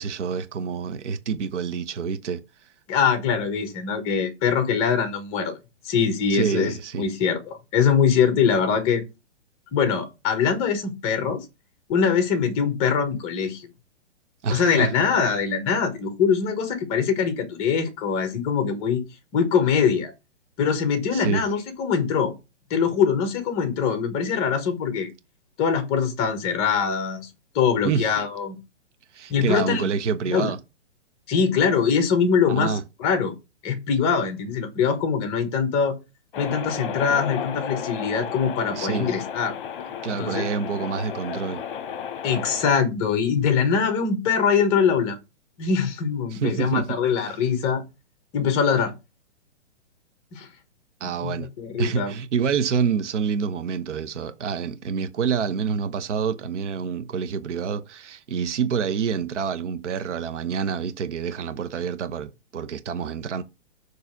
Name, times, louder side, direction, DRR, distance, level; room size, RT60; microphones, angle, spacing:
voice 1, 0.0-2.4 6.3-7.0 14.4-14.9 15.2-15.3 21.1-21.4 27.8-28.2 29.1-30.6 32.5-32.8 38.7-39.1 40.0-41.6 46.3-46.9 47.3-47.4 51.0-51.5 51.8-63.4, right 6 dB, 80° right, 1.0 m, -27 dB
voice 2, 2.9-5.6 5.8-9.0 9.7-11.4 11.9-13.7 14.5-19.0 19.3-20.1 20.6-22.3 22.7-25.1 25.6-27.3 27.5-28.6 29.3-29.9 30.3-30.5 31.3-33.3 33.6-35.9 36.4-39.5 40.1-40.5 42.2-45.2 45.6-47.8 48.3-48.9 50.3-50.5 51.2-52.1, left 6 dB, 15° left, 1.1 m, -23 dB
sound 1, 36.3-42.7, left 8 dB, 45° left, 1.0 m, -33 dB
6.9 x 3.3 x 5.9 m
hypercardioid pair, 165°, 35 cm